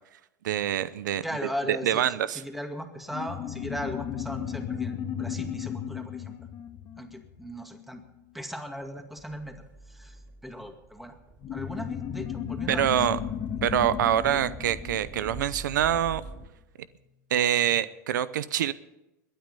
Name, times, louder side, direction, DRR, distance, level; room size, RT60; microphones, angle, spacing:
voice 1, 0.4-1.2 1.7-2.4 12.7-13.2 13.6-16.2 17.3-18.7, right 11 dB, 85° right, 17 dB, 0.7 m, -25 dB
voice 2, 1.2-6.3 7.0-8.1 8.3-9.6 9.9-11.2 11.5-12.9 14.3-14.4, equal, ahead, 5 dB, 2.2 m, -38 dB
sound 1, 3.1-8.0 11.4-16.3, left 9 dB, 40° left, 1.7 m, -35 dB
sound 2, 8.8-16.5, right 3 dB, 20° right, 4.7 m, -45 dB
21.5 x 9.1 x 5.4 m, 0.97 s
hypercardioid pair, 110°, 10 cm